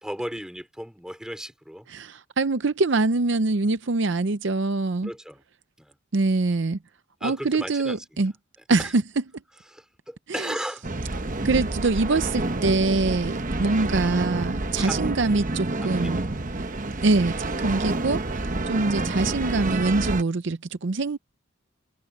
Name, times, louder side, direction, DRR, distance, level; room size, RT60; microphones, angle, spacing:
voice 1, 0.0-1.9 5.0-5.4 5.8-6.0 7.2-8.0 8.8-8.9 9.7-10.9 14.8-15.0 15.8-16.3, equal, 5° right, 4.1 m, -35 dB
voice 2, 1.9-5.1 6.1-6.8 7.2-8.3 8.7-9.2 10.3-10.5 11.4-16.3 17.0-21.2, right 3 dB, 55° right, 0.6 m, -24 dB
sound 1, 10.8-20.2, right 2 dB, 40° right, 1.0 m, -28 dB
head